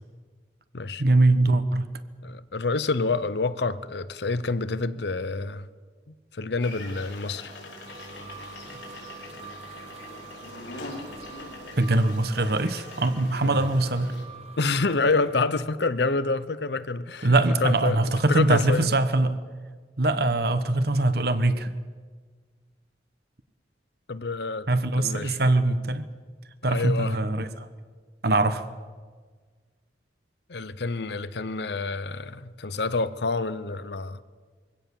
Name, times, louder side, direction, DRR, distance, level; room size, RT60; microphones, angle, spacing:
voice 1, 1.0-1.9 11.8-14.1 17.2-19.4 20.0-21.7 24.7-26.0 26.6-27.7 28.2-28.7, right 2 dB, 60° right, 1.2 m, -22 dB
voice 2, 2.2-5.7 6.3-7.5 13.4-13.6 14.6-18.9 24.1-24.7 25.0-25.4 26.7-27.2 30.5-34.2, left 3 dB, 65° left, 0.8 m, -28 dB
sound 1, 6.6-14.2, left 2 dB, 90° left, 5.0 m, -43 dB
sound 2, 7.4-15.4, right 4 dB, 35° right, 1.4 m, -45 dB
23.0 x 16.5 x 7.2 m
head